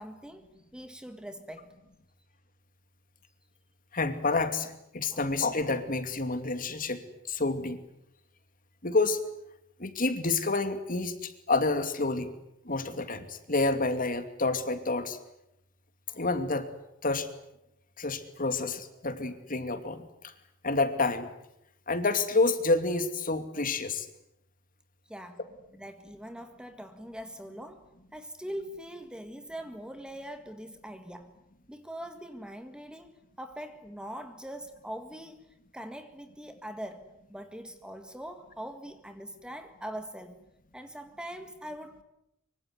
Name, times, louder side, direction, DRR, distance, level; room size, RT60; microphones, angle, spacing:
voice 1, 0.0-1.7 5.1-5.2 25.1-25.4 25.7-31.4 31.7-40.4 40.7-42.0, equal, 5° right, 1.8 m, -42 dB
voice 2, 3.9-7.0 7.3-7.8 8.8-9.2 9.8-12.3 12.6-15.2 16.1-16.7 17.0-17.3 18.0-20.3 20.6-21.3 21.9-24.1, left 3 dB, 45° left, 2.7 m, -29 dB
25.0 x 24.5 x 9.7 m
head